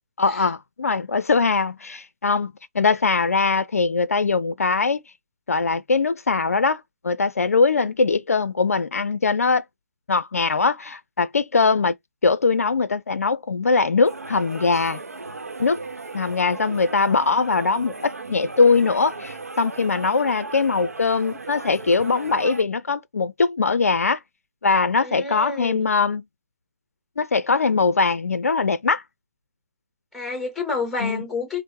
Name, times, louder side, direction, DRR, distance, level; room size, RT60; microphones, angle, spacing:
voice 1, 0.2-5.0 5.5-9.6 10.1-11.9 12.2-15.0 15.6-15.8 16.1-24.2 24.6-26.2 27.2-29.0 31.0-31.2, left 4 dB, 70° left, 0.5 m, -21 dB
sound 1, 14.0-22.6, right 3 dB, 80° right, 0.8 m, -37 dB
voice 2, 25.0-25.9 30.1-31.6, left 4 dB, 5° left, 2.2 m, -30 dB
5.1 x 2.1 x 3.6 m
figure-of-eight pair, 140°, 8 cm